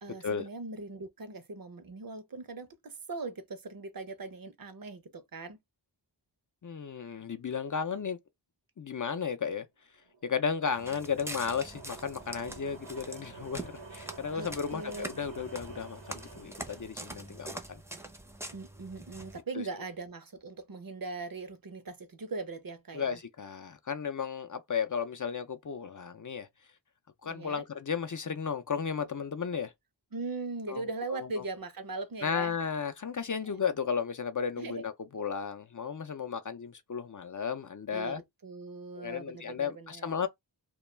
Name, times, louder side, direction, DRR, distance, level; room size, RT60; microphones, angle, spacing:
voice 1, 0.0-5.6 14.3-15.1 18.5-23.2 27.3-27.6 30.1-32.5 34.6-34.8 37.9-40.2, right 3 dB, 50° right, 0.6 m, -40 dB
voice 2, 6.6-8.2 8.8-9.7 10.2-17.8 19.6-19.7 22.9-26.5 27.2-29.7 30.7-31.4 32.2-38.2 39.0-40.3, left 6 dB, 45° left, 0.4 m, -34 dB
sound 1, 9.9-17.8, right 4 dB, 90° right, 0.9 m, -50 dB
Walk footsteps, 10.7-19.4, right 1 dB, 5° right, 0.5 m, -44 dB
2.2 x 2.2 x 3.1 m
wide cardioid pair, 45°, 45 cm